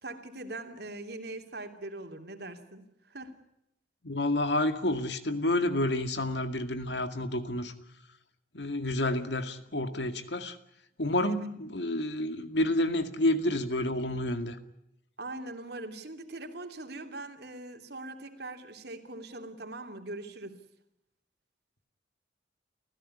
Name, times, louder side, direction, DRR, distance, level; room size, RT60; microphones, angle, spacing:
voice 1, 0.0-3.4 11.3-11.5 15.2-20.6, right 2 dB, 60° right, 6 dB, 3.1 m, -41 dB
voice 2, 4.0-7.7 8.5-10.6 11.0-14.6, left 1 dB, 70° left, 9 dB, 2.1 m, -29 dB
29.5 x 15.5 x 9.9 m, 0.81 s
head